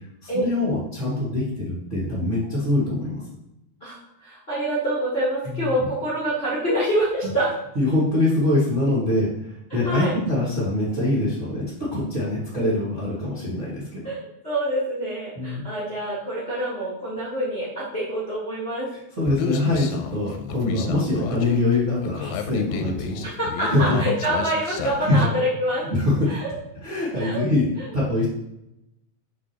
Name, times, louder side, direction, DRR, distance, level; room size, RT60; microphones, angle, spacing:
voice 1, 0.2-3.2 5.4-5.8 7.7-14.1 15.4-15.6 19.2-23.2 23.7-24.0 24.8-25.2 25.9-26.4 26.8-27.7 27.9-28.3, left 2 dB, 45° right, -8 dB, 0.9 m, -24 dB
voice 2, 3.8-7.5 9.8-10.1 14.0-18.9 23.2-25.9 26.3-26.5 27.1-27.4 27.8-27.9, right 1 dB, 50° left, -8 dB, 0.7 m, -26 dB
Human voice, 19.3-25.3, left 7 dB, 90° left, 2.4 m, -32 dB
6.3 x 5.8 x 2.9 m, 0.86 s
omnidirectional pair, 4.1 m